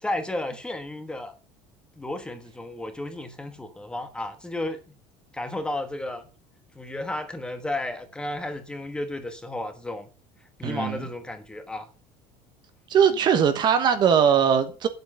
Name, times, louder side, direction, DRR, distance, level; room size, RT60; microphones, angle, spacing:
voice 1, 0.0-1.3 2.0-4.9 5.3-6.3 6.8-10.1 10.6-11.9, left 2 dB, 10° left, 1.2 m, -33 dB
voice 2, 10.6-11.0 12.9-14.9, right 7 dB, 40° right, 1.2 m, -20 dB
8.1 x 8.0 x 5.4 m
cardioid pair, 140°, 12 cm